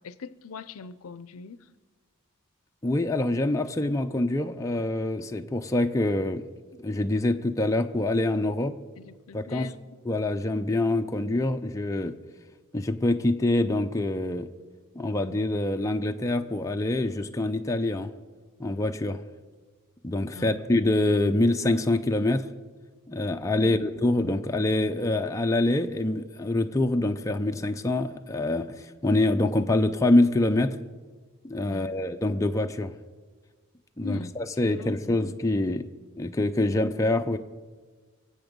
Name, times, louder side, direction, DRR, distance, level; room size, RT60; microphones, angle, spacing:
voice 1, 0.0-1.7 9.0-9.8 20.3-20.6 23.6-23.9 31.7-31.9 34.0-34.3 34.6-35.2 36.7-37.0, left 5 dB, 70° left, 15 dB, 0.5 m, -41 dB
voice 2, 2.8-6.4 6.8-8.7 9.3-9.7 10.1-12.1 12.7-14.5 15.0-18.1 18.6-19.2 20.0-22.4 23.1-30.8 31.4-32.9 34.0-35.9 36.2-37.4, left 2 dB, 15° left, 5 dB, 0.5 m, -25 dB
23.0 x 7.9 x 5.2 m, 1.4 s
head